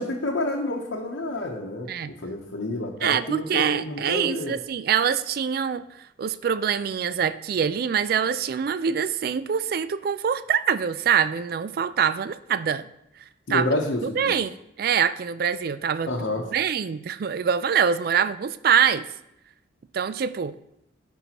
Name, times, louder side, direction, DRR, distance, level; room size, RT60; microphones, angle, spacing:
voice 1, 0.0-1.9 2.2-4.6 13.5-14.3 16.1-16.5, left 2 dB, 85° left, -2 dB, 0.9 m, -29 dB
voice 2, 3.0-5.8 6.2-12.9 13.5-13.7 14.0-16.1 16.5-19.1 19.9-20.5, right 7 dB, 50° right, 14 dB, 0.3 m, -24 dB
12.5 x 5.3 x 2.9 m, 0.80 s
head